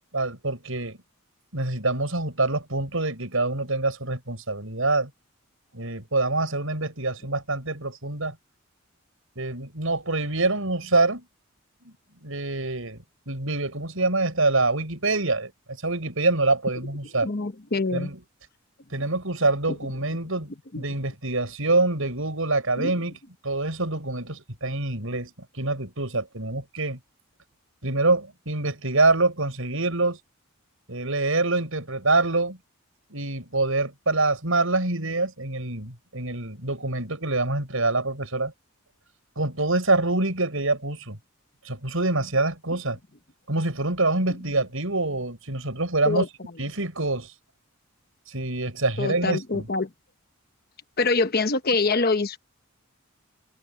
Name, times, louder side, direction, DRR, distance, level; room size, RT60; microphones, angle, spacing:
voice 1, 0.1-1.0 1.5-5.1 5.7-8.3 9.4-11.2 11.8-11.9 12.2-17.3 17.9-18.2 18.9-20.5 20.8-23.2 23.4-27.0 27.8-30.2 30.9-32.6 33.1-38.5 39.4-41.2 41.6-43.0 43.5-46.2 46.6-47.3 48.3-49.7, right 2 dB, 70° right, 6.5 m, -25 dB
voice 2, 17.2-18.1 20.7-20.8 22.8-22.9 46.0-46.3 49.0-49.9 51.0-52.4, left 3 dB, 45° left, 1.1 m, -25 dB
head